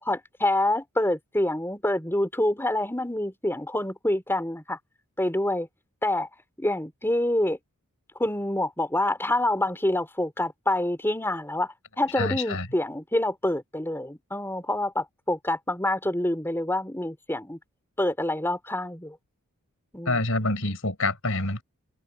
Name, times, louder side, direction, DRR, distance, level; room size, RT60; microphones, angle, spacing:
voice 1, 0.0-4.8 5.2-5.7 6.0-6.3 6.6-7.6 8.2-17.6 18.0-19.2 19.9-20.2, left 1 dB, 10° left, 3.8 m, -27 dB
voice 2, 12.2-12.7 20.0-21.6, left 2 dB, 65° left, 6.5 m, -26 dB
head